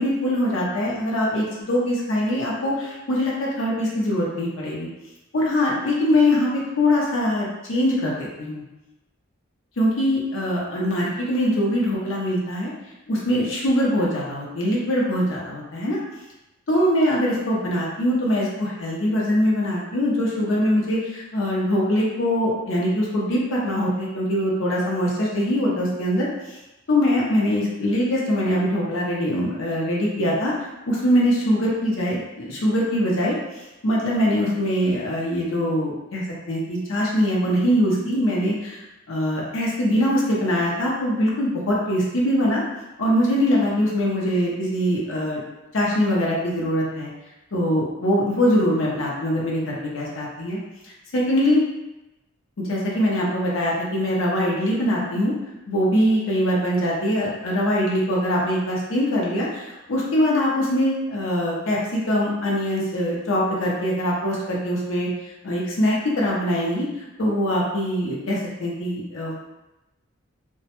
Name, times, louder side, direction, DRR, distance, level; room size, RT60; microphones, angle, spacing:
voice 1, 0.0-4.9 5.3-8.6 9.8-12.7 13.1-16.0 16.7-26.6 26.9-30.5 30.9-38.8 39.1-42.6 43.0-45.4 45.7-47.1 47.5-50.6 50.8-51.6 52.6-55.3 55.7-65.1 65.4-66.9 67.2-69.5, equal, 60° left, -4 dB, 0.5 m, -22 dB
2.1 x 2.0 x 2.8 m, 0.99 s
head